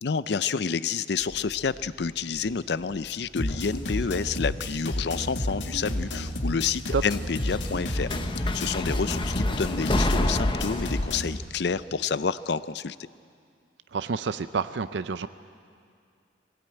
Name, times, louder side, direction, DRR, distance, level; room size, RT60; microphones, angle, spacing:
voice 1, 0.0-13.0, left 5 dB, 60° left, 16 dB, 0.5 m, -29 dB
sound 1, 1.2-3.3 3.5-4.2 5.3-5.4 7.1-11.2, left 1 dB, 25° left, 0.8 m, -30 dB
sound 2, 3.4-11.4, left 1 dB, 80° left, 2.0 m, -31 dB
voice 2, 13.9-15.3, right 5 dB, 65° right, 12 dB, 0.5 m, -28 dB
22.0 x 16.5 x 8.9 m, 2.3 s
head